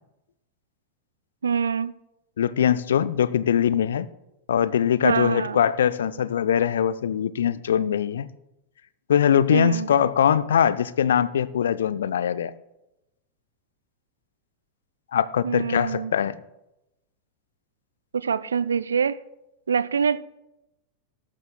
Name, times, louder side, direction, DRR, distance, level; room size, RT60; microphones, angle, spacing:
voice 1, 1.4-1.9 5.0-5.6 9.5-9.9 15.4-16.1 18.1-19.2 19.7-20.2, right 6 dB, 70° right, 0.5 m, -25 dB
voice 2, 2.4-4.1 4.5-8.3 9.1-12.5 15.1-16.4, left 9 dB, 65° left, 0.5 m, -22 dB
19.0 x 11.5 x 2.3 m
figure-of-eight pair, 90°, 0 cm